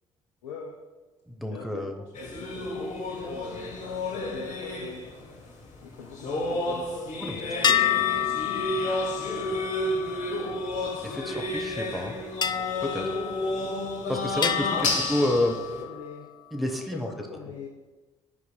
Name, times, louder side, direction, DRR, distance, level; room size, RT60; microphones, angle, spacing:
voice 1, 0.4-0.8 1.5-5.0 5.8-8.5 14.7-16.3 16.8-17.7, left 5 dB, 75° left, 0 dB, 0.6 m, -43 dB
voice 2, 1.3-2.0 7.2-7.4 11.0-12.2 12.8-13.1 14.1-14.8 15.1-15.6 16.5-17.1, left 1 dB, ahead, 4 dB, 0.8 m, -29 dB
sound 1, 2.1-15.8, left 1 dB, 50° left, 1.2 m, -31 dB
sound 2, 7.6-11.3 12.4-14.0 14.4-16.1, left 9 dB, 25° left, 0.4 m, -29 dB
11.0 x 4.7 x 2.2 m, 1.2 s
figure-of-eight pair, 45°, 16 cm